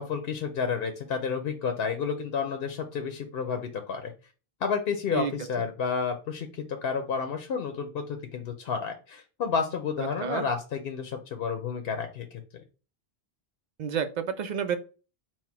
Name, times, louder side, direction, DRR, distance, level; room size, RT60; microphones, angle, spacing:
voice 1, 0.0-4.1 4.6-12.6, left 6 dB, 70° left, 6 dB, 0.8 m, -31 dB
voice 2, 10.0-10.4 13.8-14.8, right 7 dB, 55° right, 9 dB, 0.5 m, -30 dB
4.2 x 2.1 x 4.5 m, 0.35 s
omnidirectional pair, 1.1 m